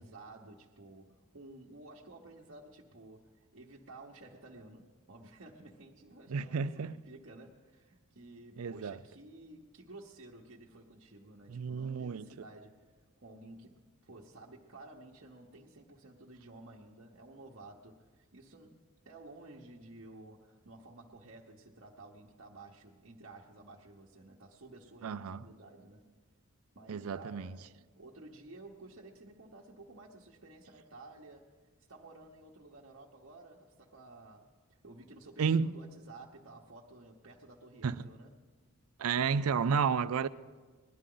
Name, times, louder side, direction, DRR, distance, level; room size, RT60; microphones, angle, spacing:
voice 1, 0.0-12.9 13.2-18.8 19.0-26.1 26.7-27.7 28.0-31.6 31.9-38.3, right 2 dB, 60° right, 1.1 m, -53 dB
voice 2, 6.3-6.9 8.6-9.0 11.5-12.3 25.0-25.4 26.9-27.6 35.4-35.7 37.8-38.0 39.0-40.3, right 6 dB, 85° right, 0.4 m, -31 dB
20.5 x 11.5 x 3.9 m
head